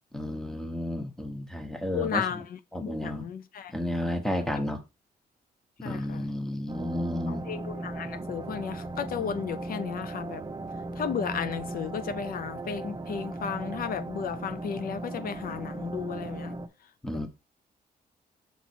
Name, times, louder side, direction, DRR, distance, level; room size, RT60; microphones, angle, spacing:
voice 1, 0.1-2.4 2.7-3.3 3.7-4.8 5.8-7.5 17.0-17.3, left 1 dB, 5° left, 1.1 m, -32 dB
voice 2, 1.9-3.7 4.5-4.6 5.8-6.3 7.3-10.4 11.0-16.6, left 7 dB, 60° left, 0.5 m, -34 dB
sound 1, 6.7-16.7, right 2 dB, 25° right, 0.7 m, -37 dB
5.9 x 4.1 x 4.5 m
cardioid pair, 130°, 17 cm